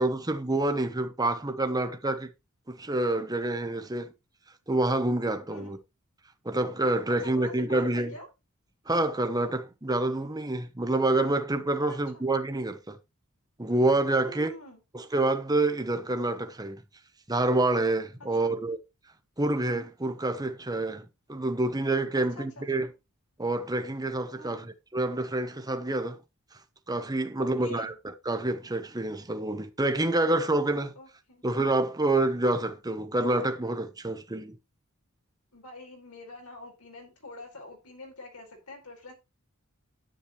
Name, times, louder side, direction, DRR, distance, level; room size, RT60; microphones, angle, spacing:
voice 1, 0.0-2.3 2.7-4.1 4.7-5.8 6.4-8.1 8.9-13.0 13.6-14.5 14.9-16.8 17.3-18.8 19.4-22.9 23.4-26.2 26.9-30.9 31.4-34.6, right 2 dB, 20° right, 1.0 m, -27 dB
voice 2, 7.2-8.3 11.9-12.3 14.2-14.8 18.4-18.7 19.4-19.6 22.2-22.9 24.4-24.7 27.4-28.0 30.9-31.4 35.5-39.1, left 1 dB, 80° left, 4.7 m, -46 dB
10.0 x 8.9 x 3.1 m
head